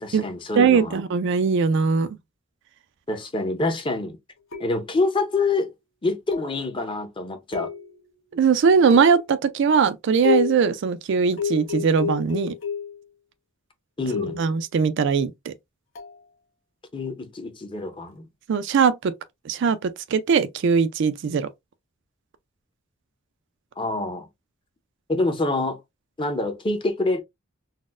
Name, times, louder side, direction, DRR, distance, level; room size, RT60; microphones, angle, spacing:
voice 1, 0.0-1.0 3.1-4.2 4.6-5.7 6.0-7.7 14.0-14.4 16.9-18.3 23.8-24.3 25.1-25.8 26.2-27.2, left 2 dB, 25° left, 0.6 m, -26 dB
voice 2, 0.6-2.2 8.3-12.5 14.4-15.5 18.5-19.1 19.4-21.5, right 6 dB, 60° right, 0.4 m, -20 dB
sound 1, 4.5-5.1 6.3-6.7 7.5-8.1 8.9-9.4 10.2-10.7 11.4-13.0 14.1-14.5 15.9-16.2, left 7 dB, 70° left, 1.1 m, -30 dB
4.1 x 2.0 x 2.4 m
head